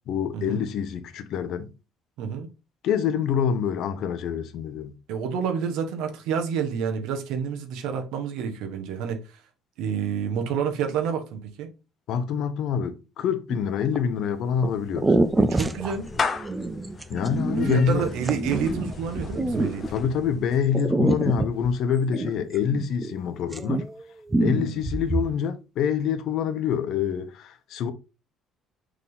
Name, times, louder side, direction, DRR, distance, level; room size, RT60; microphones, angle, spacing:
voice 1, 0.1-1.7 2.8-4.9 12.1-15.2 17.1-18.1 19.9-23.9 24.4-27.9, left 7 dB, 60° left, 0.9 m, -26 dB
voice 2, 2.2-2.5 5.1-9.4 9.8-11.7 15.4-16.1 17.5-19.8 24.4-24.8, right 7 dB, 90° right, 1.5 m, -29 dB
sound 1, 13.5-14.0 14.6-14.7 14.9-20.2 20.7-23.2 23.4-24.0 24.3-25.3, right 2 dB, 10° right, 0.5 m, -26 dB
Clapping / Meow, 14.3-20.7, left 4 dB, 25° left, 0.8 m, -35 dB
6.4 x 3.9 x 4.0 m
cardioid pair, 165°, 0 cm